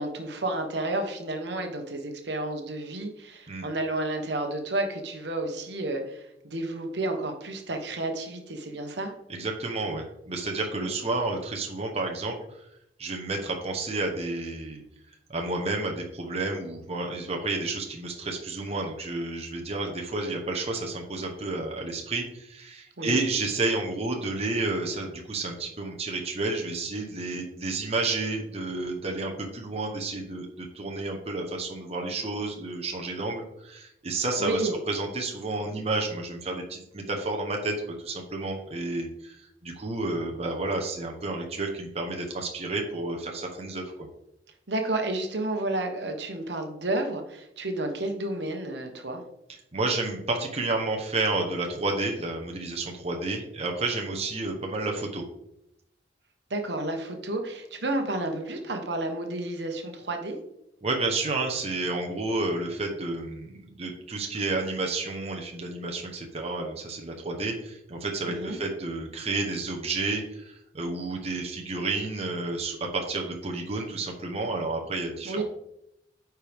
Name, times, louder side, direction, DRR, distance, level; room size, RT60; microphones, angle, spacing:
voice 1, 0.0-9.1 10.8-10.9 23.0-23.2 34.4-34.7 44.7-49.2 56.5-60.4 68.3-68.6 75.2-75.4, right 2 dB, 70° right, 4 dB, 1.2 m, -31 dB
voice 2, 9.3-12.6 13.0-14.8 15.3-37.7 38.0-44.1 49.7-55.2 60.8-75.4, right 2 dB, 35° right, 1 dB, 1.0 m, -31 dB
9.5 x 4.6 x 3.5 m, 0.80 s
head